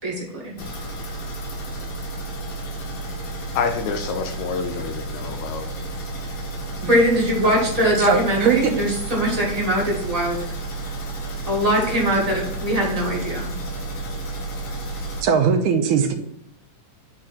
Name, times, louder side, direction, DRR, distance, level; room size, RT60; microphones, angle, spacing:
voice 1, 0.0-0.6 6.8-10.5 11.5-13.5, equal, 20° right, -4 dB, 0.9 m, -21 dB
sound 1, 0.6-15.2, right 2 dB, 60° left, 2.0 m, -31 dB
voice 2, 3.6-5.7, left 5 dB, 80° left, 7 dB, 1.8 m, -27 dB
voice 3, 8.0-8.7 15.2-16.1, right 6 dB, 85° right, 4 dB, 2.3 m, -19 dB
8.9 x 3.7 x 4.1 m, 0.75 s
omnidirectional pair, 3.6 m